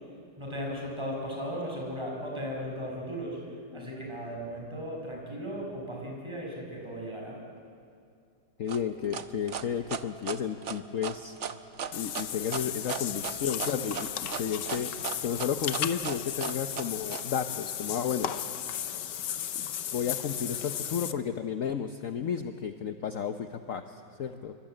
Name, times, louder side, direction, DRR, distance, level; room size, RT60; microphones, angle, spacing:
voice 1, 0.4-7.4, equal, 15° right, -1 dB, 5.7 m, -36 dB
voice 2, 8.6-11.4 11.9-14.1 14.3-14.9 15.2-18.3 19.5-19.7 19.9-24.5, left 7 dB, 55° left, 8 dB, 1.1 m, -32 dB
sound 1, 8.7-17.2, right 7 dB, 50° right, 1.1 m, -36 dB
Water / Bathtub (filling or washing), 11.9-21.1, left 10 dB, 80° left, 1.6 m, -35 dB
26.5 x 24.5 x 9.0 m, 2.3 s
omnidirectional pair, 1.9 m